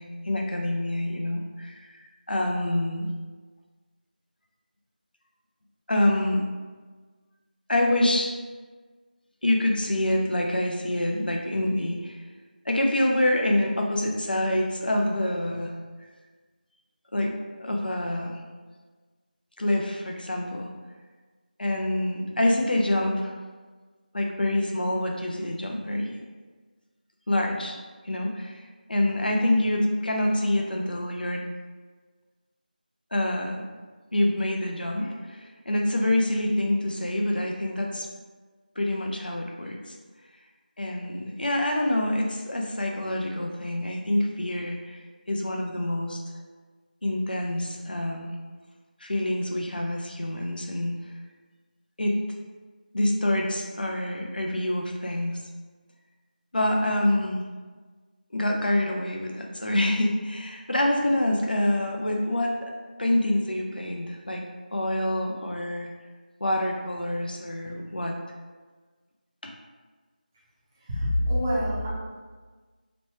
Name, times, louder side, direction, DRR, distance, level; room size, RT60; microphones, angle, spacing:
voice 1, 0.0-3.1 5.9-6.4 7.7-8.3 9.4-12.2 12.7-15.8 17.1-17.3 17.6-18.4 19.6-20.7 21.6-23.3 24.1-26.1 27.3-27.8 28.0-28.6 28.9-31.4 33.1-33.6 34.1-38.1 38.8-39.9 40.8-45.0 45.3-46.2 47.0-48.3 49.0-51.0 52.0-52.2 52.9-55.4 56.5-57.4 58.3-62.7 63.0-64.4 64.7-65.9 66.4-68.2 69.4-69.5, left 1 dB, 70° left, 1 dB, 0.5 m, -26 dB
voice 2, 70.8-71.9, left 1 dB, 15° right, -9 dB, 0.5 m, -25 dB
3.0 x 2.2 x 3.0 m, 1.4 s
figure-of-eight pair, 170°, 5 cm